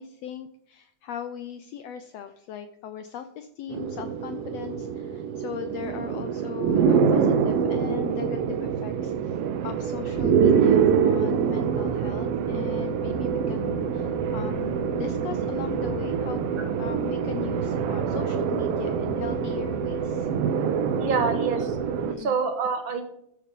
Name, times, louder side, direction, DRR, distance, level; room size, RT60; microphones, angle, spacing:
voice 1, 0.0-9.4 9.6-20.3 22.0-22.3, left 9 dB, 80° left, 9 dB, 1.4 m, -38 dB
sound 1, 3.7-22.1, right 7 dB, 80° right, 1.4 m, -25 dB
voice 2, 21.0-21.8 22.2-23.0, right 5 dB, 50° right, 5 dB, 1.9 m, -26 dB
13.5 x 7.7 x 3.8 m, 0.75 s
omnidirectional pair, 3.6 m